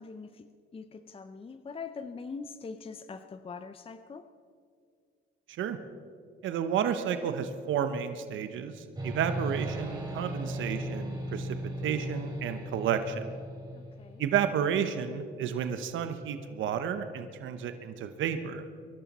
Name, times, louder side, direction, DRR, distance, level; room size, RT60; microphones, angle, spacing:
voice 1, 0.0-4.3 13.7-14.2, left 5 dB, 30° left, 10 dB, 0.6 m, -43 dB
voice 2, 6.4-11.6 11.8-13.2 14.2-18.6, right 8 dB, 75° right, 9 dB, 1.0 m, -31 dB
sound 1, 8.9-14.4, right 1 dB, 20° right, 3.9 m, -37 dB
23.5 x 12.0 x 4.2 m, 2.2 s
cardioid pair, 90°, 20 cm